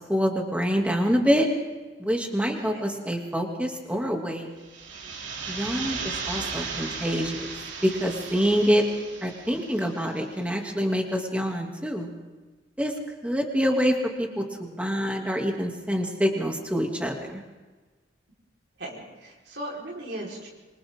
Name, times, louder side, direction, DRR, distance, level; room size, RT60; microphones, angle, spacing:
voice 1, 0.1-1.5 2.0-4.5 5.5-7.5 7.8-8.8 9.2-12.1 12.8-12.9 13.2-17.4, equal, 5° right, 1 dB, 2.8 m, -26 dB
sound 1, 4.6-10.3, right 5 dB, 90° right, 3.2 m, -36 dB
voice 2, 18.8-20.5, right 1 dB, 65° right, -3 dB, 4.8 m, -37 dB
26.5 x 26.0 x 3.8 m, 1.3 s
head